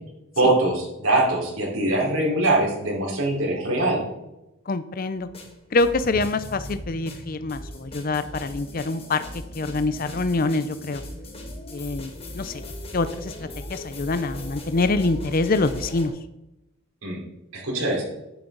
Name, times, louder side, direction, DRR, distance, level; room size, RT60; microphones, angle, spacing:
voice 1, 0.4-4.0 17.0-17.2 17.5-18.0, right 2 dB, 85° right, -2 dB, 4.2 m, -22 dB
voice 2, 4.7-5.3 5.7-9.2 9.5-11.0 11.7-12.6 12.9-13.3 13.7-16.1, left 3 dB, 45° left, 12 dB, 0.5 m, -25 dB
sound 1, 5.2-16.1, left 1 dB, 30° left, 2.0 m, -39 dB
sound 2, 6.0-10.5, equal, 30° right, 2.2 m, -44 dB
10.5 x 9.9 x 3.9 m, 0.90 s
head